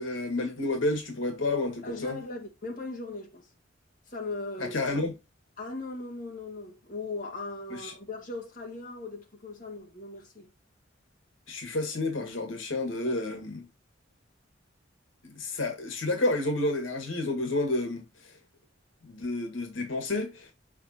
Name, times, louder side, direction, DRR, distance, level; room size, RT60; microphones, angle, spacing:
voice 1, 0.0-2.2 4.6-5.1 7.7-7.9 11.5-13.7 15.2-18.3 19.0-20.5, left 2 dB, 85° left, 1.7 m, -30 dB
voice 2, 1.8-3.5 4.1-5.0 5.6-10.5, left 3 dB, 45° left, 1.8 m, -39 dB
7.4 x 5.0 x 2.8 m
head